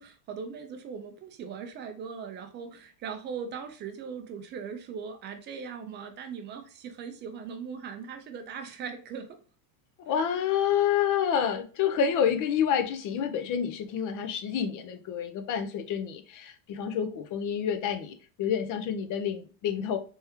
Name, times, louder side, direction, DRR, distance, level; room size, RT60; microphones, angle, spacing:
voice 1, 0.0-9.3, right 6 dB, 25° right, 0.3 m, -39 dB
voice 2, 10.0-20.0, left 8 dB, 40° left, 0.6 m, -28 dB
3.5 x 3.3 x 2.9 m
cardioid pair, 145°, 49 cm